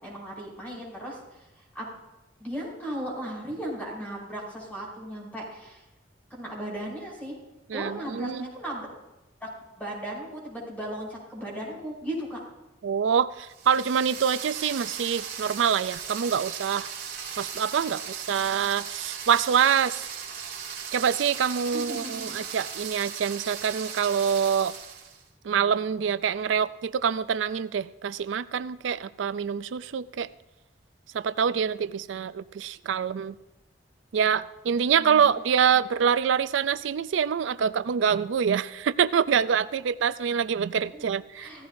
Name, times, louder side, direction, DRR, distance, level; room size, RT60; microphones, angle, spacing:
voice 1, 0.0-1.9 2.4-5.8 6.3-7.4 7.7-8.9 9.4-9.5 9.8-12.4 21.7-22.4 35.0-35.3 40.9-41.0 41.3-41.7, right 1 dB, 10° left, -4 dB, 5.5 m, -36 dB
voice 2, 7.7-8.4 12.8-16.9 17.4-20.0 20.9-24.7 25.4-30.3 31.1-33.4 34.1-41.5, right 7 dB, 85° right, 14 dB, 0.4 m, -25 dB
sound 1, 13.5-25.2, right 7 dB, 55° right, 2.8 m, -37 dB
16.0 x 14.5 x 2.6 m, 1.0 s
head